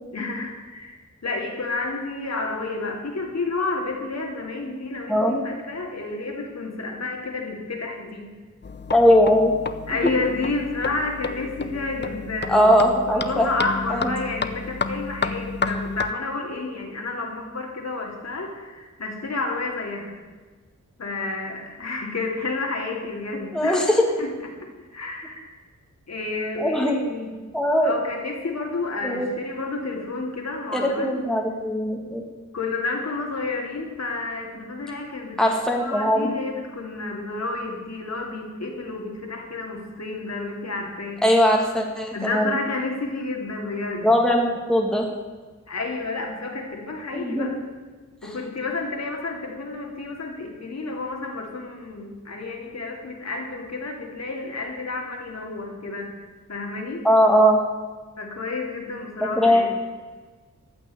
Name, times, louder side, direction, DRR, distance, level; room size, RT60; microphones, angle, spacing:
voice 1, 0.1-8.3 9.9-12.8 13.1-20.1 21.0-23.8 24.2-24.3 24.8-25.5 26.1-27.3 27.8-31.1 32.5-35.4 35.7-41.2 42.1-44.1 45.7-47.5 48.2-56.1 56.5-57.0 58.2-59.8, left 3 dB, 60° left, 0 dB, 2.7 m, -30 dB
voice 2, 5.1-5.4 8.9-9.5 10.0-10.1 12.5-13.5 13.9-14.1 23.5-24.0 26.6-27.0 27.5-27.9 29.0-29.3 30.7-32.2 35.4-36.3 41.2-42.6 44.0-45.1 47.1-47.5 57.0-57.6 59.3-59.6, equal, ahead, 0 dB, 1.9 m, -20 dB
sound 1, 8.6-16.1, left 4 dB, 35° left, 0.7 m, -31 dB
15.0 x 6.1 x 9.9 m, 1.4 s
wide cardioid pair, 115°, 31 cm